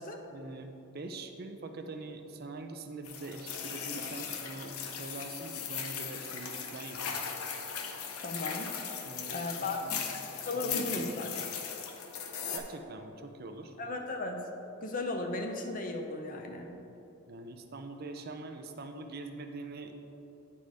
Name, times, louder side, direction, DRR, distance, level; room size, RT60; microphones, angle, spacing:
voice 1, 0.3-7.4 9.0-10.1 10.6-11.0 12.5-13.8 17.3-19.9, right 2 dB, 45° right, 5 dB, 0.5 m, -44 dB
sound 1, 3.0-12.6, left 7 dB, 85° left, 0.7 m, -38 dB
voice 2, 8.2-8.7 9.3-11.5 13.8-14.5 14.8-16.7, left 2 dB, 35° left, 3 dB, 0.5 m, -36 dB
9.7 x 4.3 x 4.7 m, 2.9 s
head